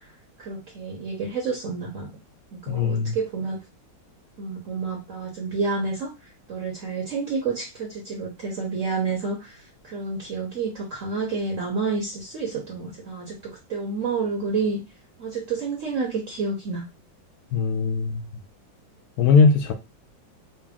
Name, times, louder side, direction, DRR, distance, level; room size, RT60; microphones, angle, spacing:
voice 1, 0.4-2.1 2.5-3.6 4.4-6.1 6.5-9.6 9.8-14.8 15.2-16.8, right 4 dB, 55° right, 0.9 m, -29 dB
voice 2, 2.7-3.1 17.5-18.2 19.2-19.7, left 5 dB, 75° left, 0.9 m, -19 dB
4.3 x 2.0 x 3.5 m
omnidirectional pair, 2.1 m